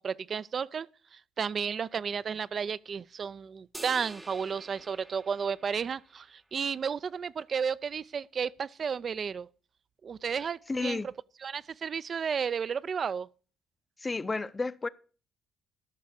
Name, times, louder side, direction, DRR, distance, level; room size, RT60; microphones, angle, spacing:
voice 1, 0.0-9.5 10.0-11.0 11.4-13.3, right 6 dB, 50° right, 0.4 m, -33 dB
sound 1, 3.7-6.3, right 1 dB, 15° right, 0.7 m, -48 dB
voice 2, 10.7-11.1 14.0-14.9, left 3 dB, 25° left, 0.6 m, -31 dB
13.0 x 5.8 x 6.5 m
supercardioid pair, 65°, 0 cm